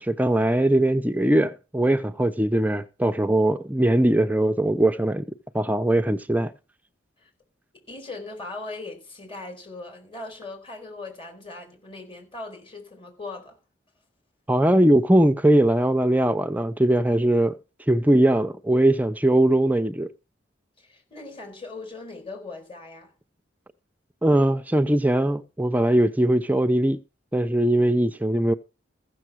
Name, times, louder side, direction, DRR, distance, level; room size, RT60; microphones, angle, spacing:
voice 1, 0.0-5.3 5.5-6.5 14.5-17.6 17.9-20.1 24.2-27.0 27.3-28.5, right 1 dB, 10° right, 0.5 m, -20 dB
voice 2, 7.7-13.6 20.8-23.1, left 3 dB, 30° left, 4.6 m, -39 dB
15.0 x 6.8 x 6.2 m
head